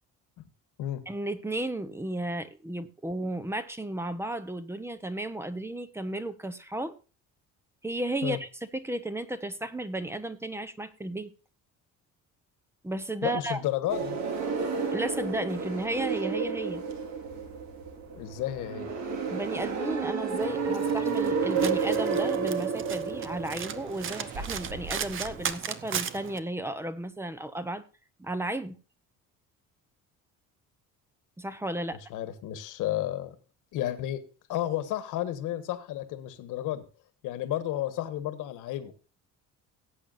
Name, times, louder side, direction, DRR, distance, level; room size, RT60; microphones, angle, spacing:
voice 1, 1.1-6.9 7.8-11.3 12.8-13.6 14.9-16.8 19.3-27.8 28.2-28.8 31.4-32.0, right 1 dB, 10° right, 13 dB, 0.8 m, -34 dB
voice 2, 13.2-14.2 18.1-18.9 32.1-33.3 33.7-34.2 34.5-36.8 37.2-39.1, left 12 dB, 70° left, 11 dB, 1.5 m, -32 dB
sound 1, 13.9-25.5, right 5 dB, 60° right, 2.4 m, -31 dB
Domestic sounds home sounds, 20.4-26.4, right 8 dB, 40° right, 0.8 m, -37 dB
17.5 x 8.4 x 2.6 m, 0.33 s
cardioid pair, 150°, 32 cm